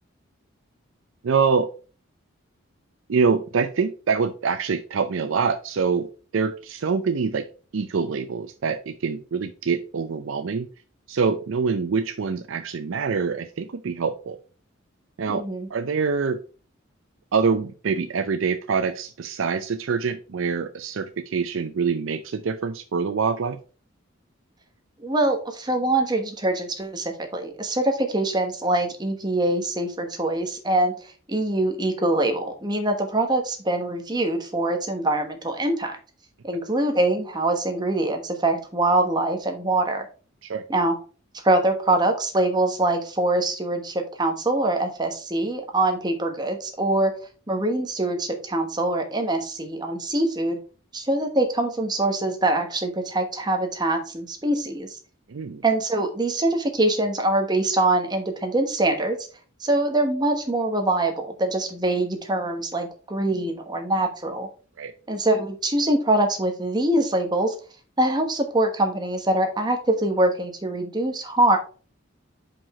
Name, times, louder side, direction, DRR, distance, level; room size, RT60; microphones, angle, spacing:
voice 1, 1.2-1.7 3.1-6.1 6.3-7.4 7.7-10.7 11.1-14.4 15.2-15.4 15.7-16.4 17.3-23.6 40.4-40.6 55.3-55.6 64.8-64.9, right 5 dB, 70° right, 9 dB, 0.5 m, -25 dB
voice 2, 15.3-15.7 25.0-36.0 36.4-40.0 40.7-41.0 41.4-47.1 47.5-50.6 50.9-54.9 55.6-59.2 59.6-64.5 65.1-67.5 68.0-71.6, right 2 dB, 20° right, 4 dB, 1.2 m, -24 dB
5.7 x 5.2 x 4.3 m, 0.38 s
head